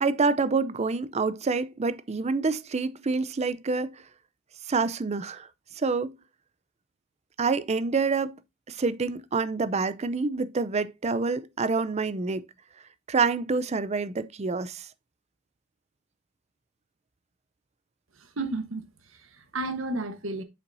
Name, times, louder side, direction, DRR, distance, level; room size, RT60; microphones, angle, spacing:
voice 1, 0.0-3.9 4.7-5.5 5.8-6.1 7.4-8.4 8.7-12.4 13.1-14.9, right 4 dB, 35° right, 0.5 m, -27 dB
voice 2, 18.2-18.8 19.1-20.4, right 2 dB, 70° right, 1.2 m, -32 dB
7.6 x 5.7 x 2.6 m
head